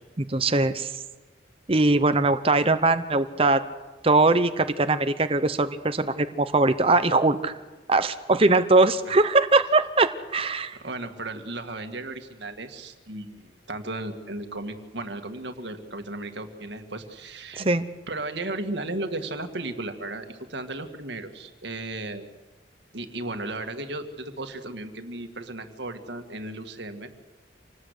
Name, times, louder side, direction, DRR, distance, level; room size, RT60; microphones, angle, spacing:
voice 1, 0.2-0.9 1.7-3.6 4.0-7.5 7.9-10.8 17.6-17.9, right 3 dB, 30° right, 10 dB, 0.8 m, -21 dB
voice 2, 10.7-17.7 18.1-22.3 22.9-27.1, right 2 dB, 65° right, 7 dB, 1.9 m, -35 dB
26.5 x 19.5 x 8.2 m, 1.2 s
head